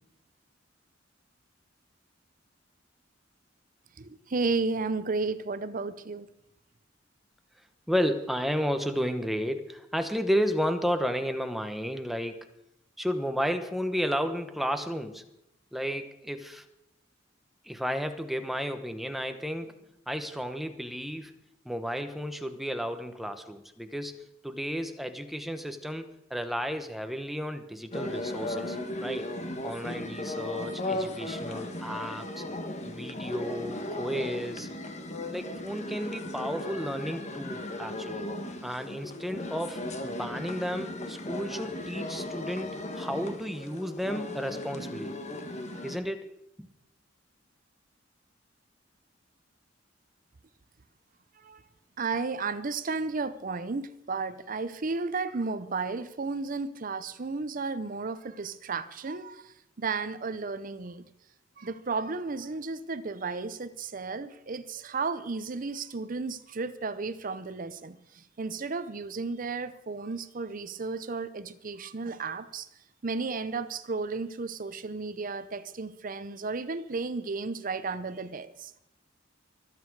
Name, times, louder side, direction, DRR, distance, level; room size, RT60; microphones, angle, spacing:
voice 1, 4.0-6.3 51.4-51.6 52.0-61.1 61.6-72.7 73.0-78.8, right 4 dB, 45° right, 0.6 m, -33 dB
voice 2, 7.9-12.5 13.0-15.2 15.7-16.6 17.6-19.8 20.1-21.3 21.6-29.2 29.6-32.4 32.8-34.7 35.3-38.2 38.6-45.1 45.8-46.3 46.6-46.7, equal, ahead, 1.0 m, -32 dB
sound 1, 27.9-46.0, left 1 dB, 35° left, 1.5 m, -36 dB
24.0 x 8.5 x 4.7 m
head